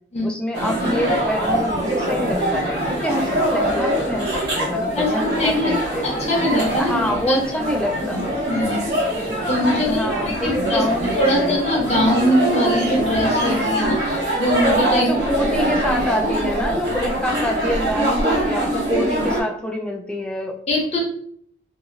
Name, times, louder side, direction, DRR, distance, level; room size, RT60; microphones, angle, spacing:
voice 1, 0.2-6.1 6.8-8.2 9.8-11.1 11.4-11.6 15.0-20.6, equal, 5° left, 1 dB, 0.4 m, -26 dB
sound 1, 0.5-19.4, right 1 dB, 65° right, 1.0 m, -23 dB
voice 2, 4.9-5.8 6.0-7.4 8.1-8.2 8.5-9.1 9.5-10.8 11.1-15.1 20.7-21.0, left 1 dB, 40° left, -2 dB, 0.8 m, -22 dB
2.8 x 2.6 x 2.7 m, 0.63 s
head